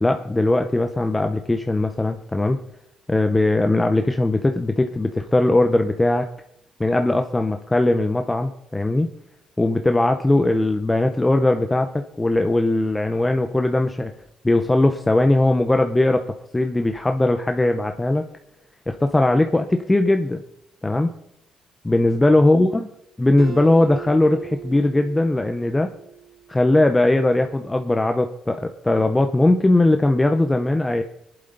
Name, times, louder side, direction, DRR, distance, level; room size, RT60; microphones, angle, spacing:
voice 1, 0.0-2.6 3.1-6.3 6.8-9.1 9.6-11.9 12.2-14.1 14.4-16.2 16.5-18.2 18.9-20.4 20.8-21.1 21.8-22.9 23.2-25.9 26.5-31.0, left 2 dB, 15° left, 6 dB, 0.8 m, -19 dB
Acoustic guitar, 23.4-26.8, right 9 dB, 40° right, 3.2 m, -38 dB
20.5 x 11.0 x 4.0 m, 0.78 s
cardioid pair, 90°, 0 cm